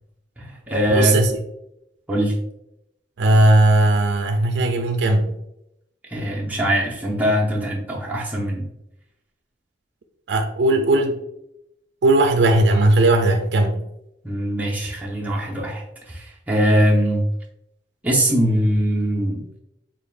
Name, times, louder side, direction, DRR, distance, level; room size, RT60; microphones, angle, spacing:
voice 1, 0.4-1.2 2.1-2.3 6.1-8.7 14.2-17.2 18.0-19.5, equal, 10° right, -4 dB, 0.6 m, -21 dB
voice 2, 0.9-1.3 3.2-5.4 10.3-11.2 12.0-13.8, right 2 dB, 70° right, 5 dB, 0.4 m, -17 dB
3.8 x 3.5 x 2.4 m, 0.82 s
head